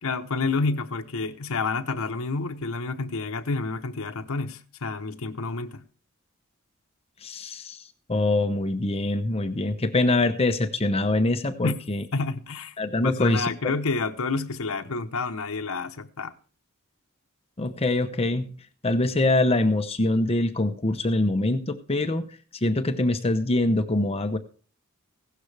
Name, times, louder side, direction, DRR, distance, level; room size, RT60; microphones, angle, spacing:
voice 1, 0.0-5.8 11.6-11.7 12.1-12.7 13.0-16.3, left 3 dB, 75° left, 0.9 m, -29 dB
voice 2, 7.2-7.8 8.1-12.0 12.8-13.5 17.6-18.5 18.8-22.3 22.6-24.4, left 2 dB, 25° left, 0.8 m, -24 dB
16.0 x 11.5 x 3.3 m
head